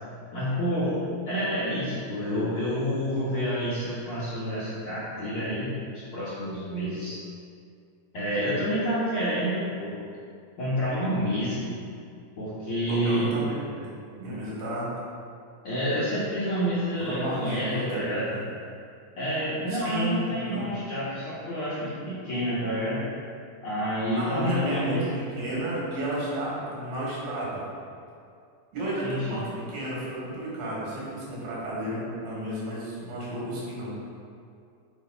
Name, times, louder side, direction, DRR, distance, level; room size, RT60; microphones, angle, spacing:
voice 1, 0.3-1.0 1.2-5.7 6.1-7.2 8.1-9.9 10.6-11.7 12.4-13.3 15.6-18.3 19.1-23.0 23.6-25.2 29.0-29.4, equal, 60° left, -11 dB, 1.4 m, -28 dB
voice 2, 12.9-14.9 17.0-18.4 19.7-20.8 24.1-27.6 28.7-33.9, right 1 dB, 90° right, -6 dB, 3.8 m, -32 dB
6.6 x 4.7 x 5.0 m, 2.4 s
omnidirectional pair, 4.2 m